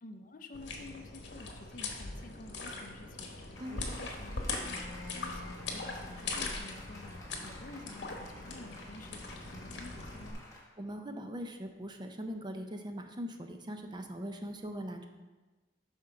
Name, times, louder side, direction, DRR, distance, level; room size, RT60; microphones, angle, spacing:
voice 1, 0.0-9.2 9.5-10.4, left 2 dB, 45° left, 6 dB, 0.5 m, -51 dB
sound 1, 0.5-10.3, left 3 dB, 75° left, 1.1 m, -41 dB
Applause, 3.5-10.6, left 1 dB, 20° left, 1.2 m, -53 dB
Wind instrument woodwind instrument, 4.5-10.2, left 3 dB, 10° right, 1.3 m, -52 dB
voice 2, 10.8-15.1, equal, 25° right, 5 dB, 0.5 m, -41 dB
6.1 x 4.4 x 5.8 m, 1.2 s
head